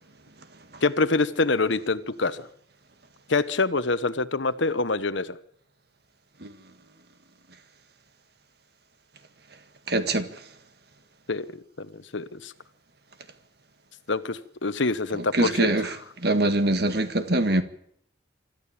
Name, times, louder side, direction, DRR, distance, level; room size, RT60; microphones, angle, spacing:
voice 1, 0.8-2.5 3.3-5.4 11.3-12.5 14.1-16.0, left 3 dB, 70° left, 1.1 m, -26 dB
voice 2, 9.9-10.3 15.3-15.9 16.2-17.6, right 2 dB, 55° right, 1.7 m, -23 dB
25.5 x 13.5 x 8.7 m
head